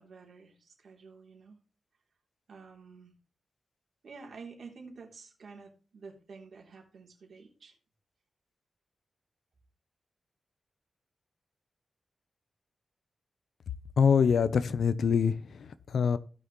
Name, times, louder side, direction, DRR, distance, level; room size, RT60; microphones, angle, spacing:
voice 1, 0.0-1.6 2.5-3.1 4.0-7.7, right 4 dB, 70° right, 3.3 m, -50 dB
voice 2, 14.0-16.2, left 6 dB, 80° left, 0.8 m, -25 dB
16.5 x 5.8 x 3.2 m
wide cardioid pair, 100°, 0 cm